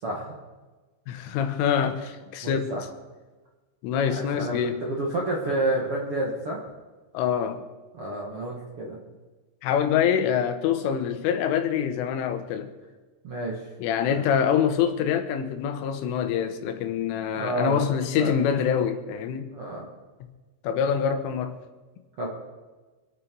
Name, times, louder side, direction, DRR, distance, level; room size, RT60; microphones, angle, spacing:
voice 1, 0.0-0.3 2.4-2.8 4.2-6.6 7.9-9.0 13.2-13.6 14.0-14.2 17.3-17.9 18.2-18.4 19.5-19.9 22.2-22.3, right 2 dB, 60° right, 1.4 m, -29 dB
voice 2, 1.1-2.7 3.8-4.8 7.1-7.6 9.6-12.7 13.8-19.5 20.6-21.6, left 8 dB, 85° left, 3.7 m, -25 dB
26.5 x 8.9 x 4.6 m
omnidirectional pair, 5.6 m